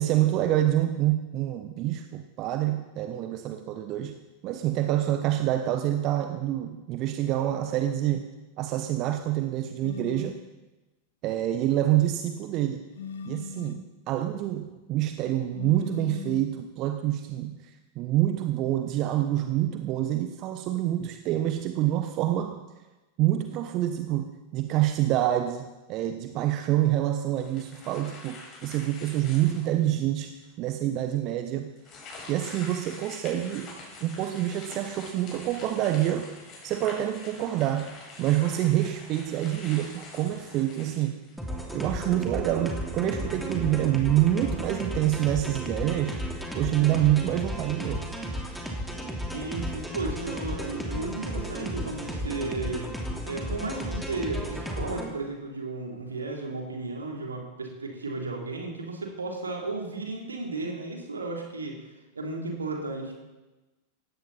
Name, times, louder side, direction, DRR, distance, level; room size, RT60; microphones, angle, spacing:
voice 1, 0.0-4.2 4.4-8.3 8.6-10.4 11.2-12.8 13.2-22.6 23.2-31.8 32.3-33.7 34.0-36.3 36.6-37.9 38.2-41.2 41.7-46.2 46.5-48.1, right 13 dB, 40° right, 8 dB, 0.9 m, -27 dB
sound 1, 9.8-10.4 12.9-13.9 15.5-16.6, left 8 dB, 60° left, 0.9 m, -38 dB
sound 2, 27.3-29.9 30.4-30.5 31.8-41.6, left 3 dB, 30° left, 5.6 m, -45 dB
sound 3, 41.4-55.1, equal, ahead, 2.7 m, -34 dB
voice 2, 49.3-52.9 53.2-61.8 62.2-63.1, right 3 dB, 75° right, 1 dB, 3.4 m, -34 dB
18.0 x 15.5 x 4.3 m, 1.1 s
figure-of-eight pair, 90°, 0 cm